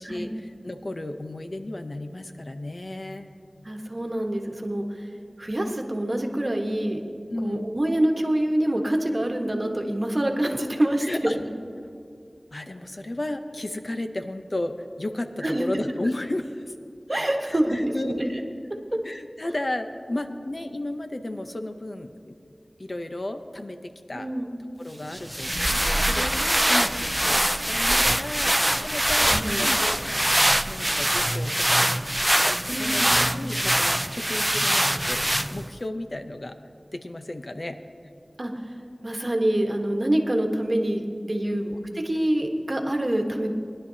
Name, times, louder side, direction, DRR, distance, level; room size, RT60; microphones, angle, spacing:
voice 1, 0.0-3.3 7.3-7.7 11.0-11.4 12.5-16.7 17.4-18.1 19.0-22.4 22.8-24.3 24.8-28.5 28.8-30.3 30.7-31.9 32.4-33.0 33.3-36.6 36.9-37.8 41.4-41.7, left 1 dB, 55° left, 7 dB, 0.7 m, -33 dB
voice 2, 3.6-5.0 5.4-7.0 7.4-11.5 15.4-15.6 17.1-18.4 24.1-24.5 29.3-29.7 32.7-33.1 38.4-38.5 39.0-41.7 42.0-43.5, right 1 dB, 45° right, 2 dB, 1.3 m, -26 dB
sound 1, 25.1-35.8, right 1 dB, 15° right, 0.3 m, -23 dB
21.0 x 11.0 x 2.8 m, 2.4 s
wide cardioid pair, 55°, 0 cm